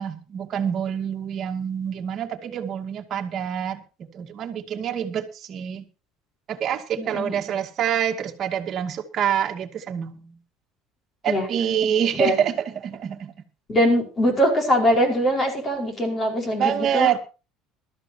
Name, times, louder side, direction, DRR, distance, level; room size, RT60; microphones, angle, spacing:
voice 1, 0.0-3.8 4.1-5.8 6.5-10.4 11.2-13.3 16.6-17.2, right 9 dB, 35° right, 2 dB, 2.2 m, -26 dB
voice 2, 7.0-7.5 11.3-11.5 12.1-12.4 13.7-17.1, equal, 25° left, 3 dB, 5.0 m, -22 dB
21.0 x 13.5 x 2.9 m, 0.33 s
cardioid pair, 150°, 0 cm